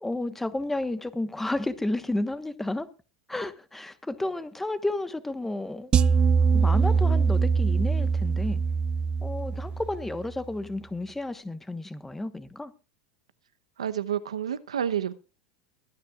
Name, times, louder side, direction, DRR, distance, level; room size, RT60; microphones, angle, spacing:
voice 1, 0.0-2.9 3.3-5.9 6.5-8.6 9.2-12.7, left 2 dB, 10° left, 1.2 m, -31 dB
sound 1, 5.9-10.2, right 5 dB, 30° right, 0.6 m, -23 dB
voice 2, 13.8-15.1, right 9 dB, 90° right, 0.9 m, -29 dB
22.5 x 9.4 x 2.4 m
hypercardioid pair, 95°, 3 cm